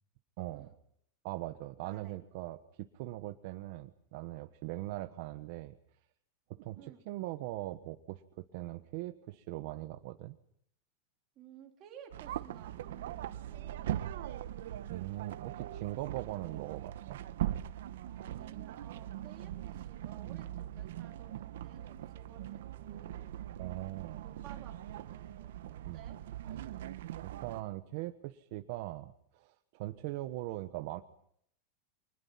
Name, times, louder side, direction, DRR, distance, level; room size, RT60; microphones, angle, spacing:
voice 1, 0.4-0.7 1.2-5.7 6.5-8.2 8.5-10.4 14.9-17.2 23.6-24.3 25.9-26.0 27.2-31.0, right 17 dB, 50° right, 8 dB, 1.2 m, -41 dB
voice 2, 1.8-2.2 6.8-7.0 11.4-14.4 18.1-23.4 24.2-26.9, right 8 dB, 30° right, 1 dB, 3.8 m, -56 dB
sound 1, 12.1-27.6, right 12 dB, 75° right, 1.1 m, -41 dB
30.0 x 24.5 x 5.8 m, 0.71 s
supercardioid pair, 170°, 0 cm